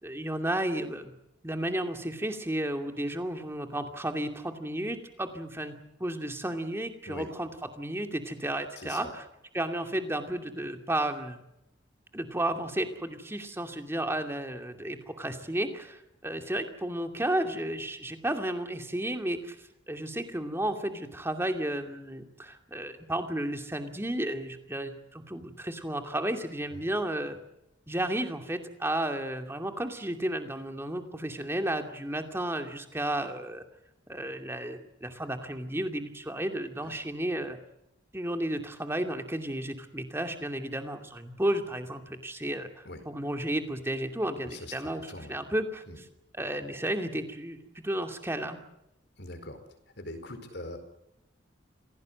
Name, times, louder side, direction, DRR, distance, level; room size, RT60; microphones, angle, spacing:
voice 1, 0.0-1.1 1.4-5.7 6.0-9.2 9.5-11.4 12.1-19.6 19.9-27.4 27.9-33.6 34.1-37.6 38.1-46.0 46.3-47.6 47.8-48.6, right 1 dB, 10° right, 6 dB, 2.5 m, -33 dB
voice 2, 8.8-9.1 26.7-26.8 36.8-36.9 42.8-43.0 44.4-45.3 45.9-46.0 49.2-49.6 50.0-50.8, left 1 dB, 55° left, 8 dB, 4.6 m, -42 dB
27.0 x 17.5 x 7.8 m, 0.84 s
head